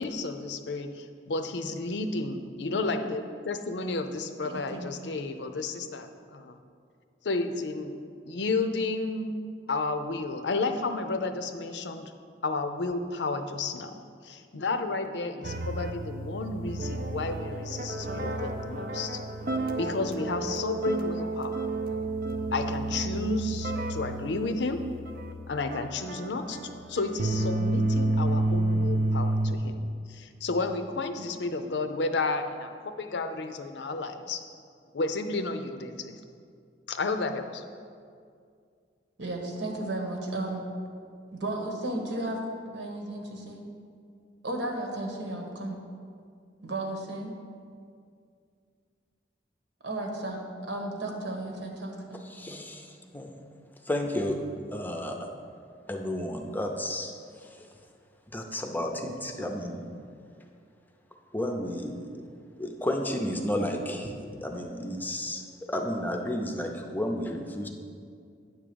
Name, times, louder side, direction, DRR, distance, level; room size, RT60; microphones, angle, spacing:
voice 1, 0.0-6.6 7.2-7.9 8.3-9.3 9.7-12.1 12.4-13.9 14.2-19.2 19.8-21.6 22.5-24.8 25.5-34.4 34.9-36.2 36.9-37.6, left 3 dB, 70° left, 8 dB, 0.6 m, -32 dB
voice 2, 4.4-4.9 15.4-15.7 39.2-40.6 41.3-42.4 42.7-43.6 44.4-45.8 46.6-47.3 49.8-50.4 50.7-52.2, right 2 dB, 85° right, 1 dB, 1.3 m, -34 dB
sound 1, 15.4-29.5, right 2 dB, 55° right, 0.6 m, -30 dB
voice 3, 52.3-53.3 53.9-54.5 54.7-55.3 55.9-57.1 58.3-59.9 61.3-62.0 62.6-64.1 64.4-65.4 65.7-67.7, left 1 dB, 10° left, 3 dB, 0.6 m, -32 dB
9.6 x 3.7 x 6.9 m, 2.3 s
head